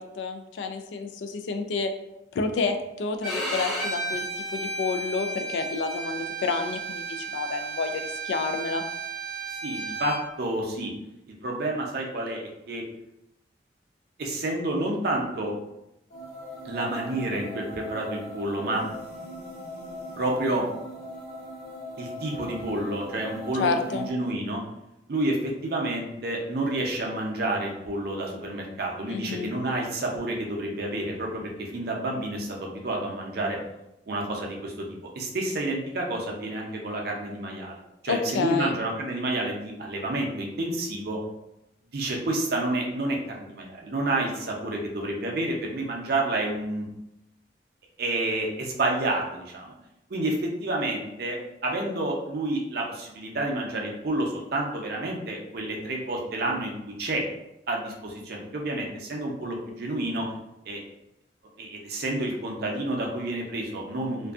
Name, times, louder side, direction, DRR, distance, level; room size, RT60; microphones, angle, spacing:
voice 1, 0.0-1.9 2.3-8.8 23.6-24.1 29.1-29.5 38.1-38.8, left 4 dB, 80° left, 7 dB, 0.3 m, -29 dB
Bowed string instrument, 3.2-10.2, right 3 dB, ahead, 0.7 m, -33 dB
voice 2, 9.6-10.9 11.4-12.8 14.2-15.5 16.6-18.8 20.2-20.6 22.0-24.6 25.1-33.6 34.1-34.9 35.2-41.2 41.9-46.8 48.0-49.7 50.1-51.4 51.6-57.2 57.7-60.3 60.7-60.8 61.6-64.3, right 2 dB, 55° right, -1 dB, 0.5 m, -29 dB
sound 1, 16.1-24.1, equal, 55° left, 1.1 m, -40 dB
2.5 x 2.3 x 2.3 m, 0.88 s
head